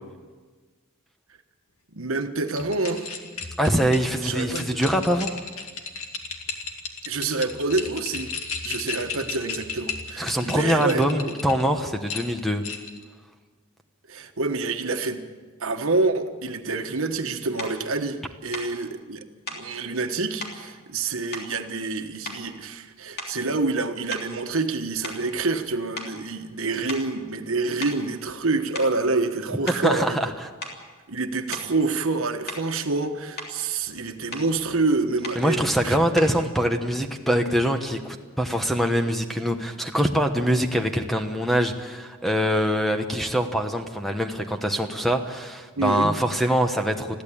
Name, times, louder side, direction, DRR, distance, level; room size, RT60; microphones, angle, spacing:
voice 1, 1.9-3.1 4.2-4.8 7.0-8.3 8.6-11.3 14.1-15.2 15.6-19.2 19.5-30.2 31.1-36.0 45.8-46.1, right 3 dB, 70° right, 6 dB, 1.4 m, -27 dB
sound 1, 2.5-11.6 12.1-13.0, left 5 dB, 70° left, 2.3 m, -35 dB
voice 2, 3.6-5.4 10.2-12.6 29.7-30.3 35.4-47.2, equal, ahead, 5 dB, 1.1 m, -24 dB
sound 2, 17.6-17.8 18.5-18.7 19.5-19.7 20.4-20.6 21.3-21.9 22.2-22.6 23.1-23.5 24.1-25.7 25.9-26.2 26.9-27.1 27.8-28.0 28.6-29.0 29.7-29.9 30.6-30.9 31.5-31.7 32.5-32.8 33.1-33.6 34.3-34.5 35.2-35.5 36.2-36.4, left 2 dB, 45° left, 3.2 m, -37 dB
21.5 x 15.0 x 8.6 m, 1.4 s
head